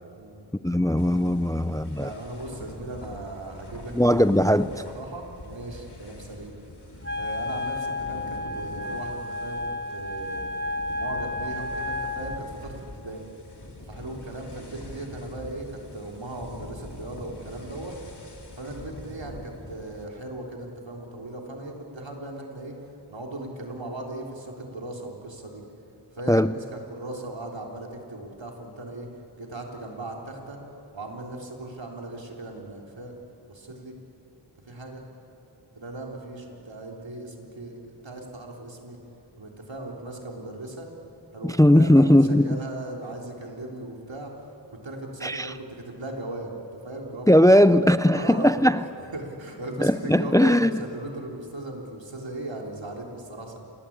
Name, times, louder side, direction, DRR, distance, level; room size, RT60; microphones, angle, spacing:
voice 1, 0.5-2.1 3.9-4.8 26.3-26.6 41.4-42.6 45.2-45.5 47.3-48.8 49.8-50.8, left 1 dB, 10° left, 0.5 m, -19 dB
sound 1, 1.0-20.1, left 1 dB, 60° left, 3.4 m, -44 dB
voice 2, 2.0-4.0 4.5-6.5 7.2-9.6 9.9-10.5 11.0-13.3 13.8-18.0 18.6-22.7 23.1-25.6 26.1-26.6 26.9-29.1 29.4-30.6 30.9-33.2 33.4-34.0 34.7-35.0 35.8-39.0 39.4-40.9 41.3-44.3 44.7-46.5 46.8-47.5 48.1-48.5 49.1-53.6, right 2 dB, 85° right, 3.7 m, -38 dB
Wind instrument woodwind instrument, 7.0-12.4, left 2 dB, 35° right, 1.5 m, -32 dB
28.0 x 20.0 x 8.8 m
wide cardioid pair, 60°, 44 cm